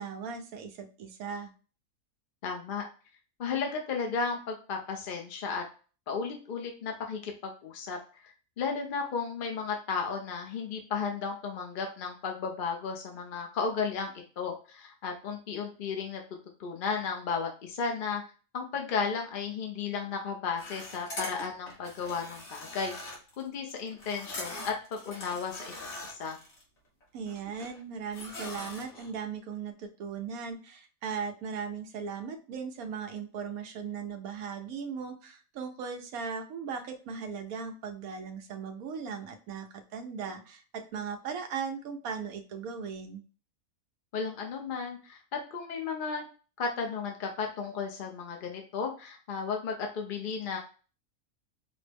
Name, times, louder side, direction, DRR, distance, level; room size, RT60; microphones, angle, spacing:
voice 1, 0.0-1.5 27.1-43.2, right 6 dB, 85° right, 6 dB, 1.1 m, -38 dB
voice 2, 2.4-2.8 3.4-5.6 6.1-8.0 8.2-16.2 16.6-18.2 18.5-22.9 23.4-25.7 26.0-26.4 44.1-46.2 46.6-50.6, left 5 dB, 55° left, 2 dB, 0.6 m, -34 dB
sound 1, 20.6-26.6 27.0-27.8 28.1-29.1, left 1 dB, 75° left, 1.8 m, -42 dB
5.1 x 2.1 x 3.3 m, 0.36 s
omnidirectional pair, 1.5 m